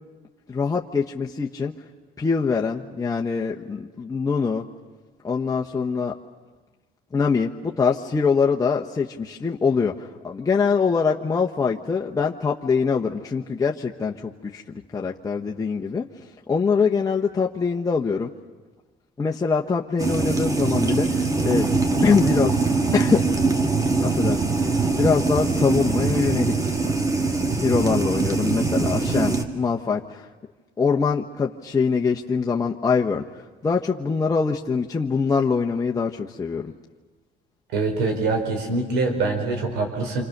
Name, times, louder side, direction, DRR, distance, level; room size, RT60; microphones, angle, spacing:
voice 1, 0.5-1.7 2.2-4.6 5.2-6.1 7.1-14.6 14.9-16.1 16.5-18.3 19.2-21.7 22.0-22.6 22.9-23.3 24.0-26.5 27.5-30.3 30.8-33.2 33.6-36.7, left 5 dB, 20° left, -1 dB, 1.1 m, -23 dB
sound 1, 20.0-29.4, right 3 dB, 20° right, 2.0 m, -22 dB
voice 2, 37.7-40.2, right 3 dB, 85° right, 3 dB, 4.5 m, -24 dB
27.5 x 26.5 x 6.7 m, 1.3 s
cardioid pair, 110°, 17 cm